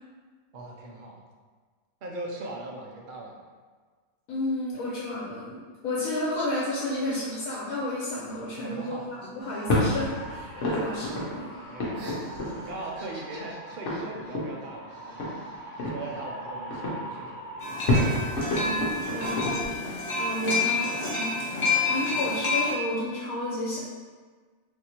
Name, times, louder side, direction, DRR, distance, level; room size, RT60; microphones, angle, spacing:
voice 1, 0.5-1.2 2.0-3.4 8.6-9.1 10.7-10.9 11.7-12.2 12.6-15.3 15.8-17.7 21.6-22.2, right 2 dB, 60° right, -2 dB, 0.5 m, -40 dB
voice 2, 4.3-11.5 18.5-19.7 20.2-21.4 21.9-23.8, left 1 dB, 85° left, -5 dB, 1.1 m, -32 dB
sound 1, 6.3-10.4 10.6-11.2 11.5-16.2, right 2 dB, 80° right, 1.1 m, -47 dB
sound 2, 9.4-19.7, left 1 dB, 65° left, 1.1 m, -31 dB
sound 3, 17.6-22.7, left 3 dB, 45° left, 0.7 m, -28 dB
3.5 x 2.6 x 2.9 m, 1.5 s
omnidirectional pair, 1.4 m